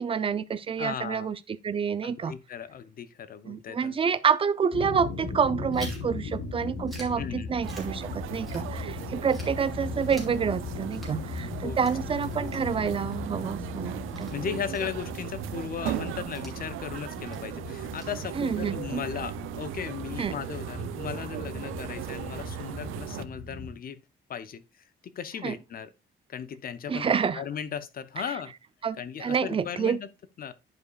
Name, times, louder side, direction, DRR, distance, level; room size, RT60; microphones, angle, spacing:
voice 1, 0.0-1.4 1.6-2.3 3.4-14.3 18.4-19.0 20.2-20.4 25.4-25.6 26.9-27.4 28.8-30.0, right 6 dB, 25° right, 0.4 m, -28 dB
voice 2, 0.8-1.3 2.0-4.0 7.2-7.6 11.6-11.8 12.4-12.5 14.3-24.0 24.3-25.9 26.3-28.5 29.0-30.1 30.4-30.5, left 7 dB, 45° left, 0.6 m, -37 dB
sound 1, 4.7-23.7, left 4 dB, 60° left, 3.9 m, -38 dB
Chewing mastication, 5.7-9.0 9.3-18.7, equal, ahead, 2.7 m, -50 dB
sound 2, 7.6-23.2, right 13 dB, 90° right, 0.5 m, -38 dB
11.0 x 5.0 x 2.4 m
cardioid pair, 145°, 20 cm